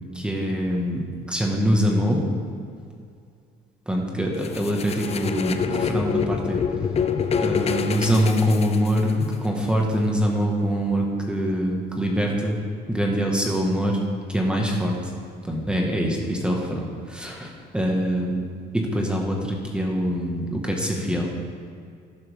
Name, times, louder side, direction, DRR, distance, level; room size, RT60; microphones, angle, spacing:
voice 1, 0.1-1.0 1.3-2.2 3.9-6.6 7.4-12.6 12.9-14.0 14.3-15.0 15.5-18.4 18.7-21.3, equal, 5° right, -1 dB, 1.7 m, -24 dB
sound 1, 4.4-9.3, left 7 dB, 35° left, 0.7 m, -26 dB
12.5 x 11.5 x 3.7 m, 2.3 s
cardioid pair, 110°, 17 cm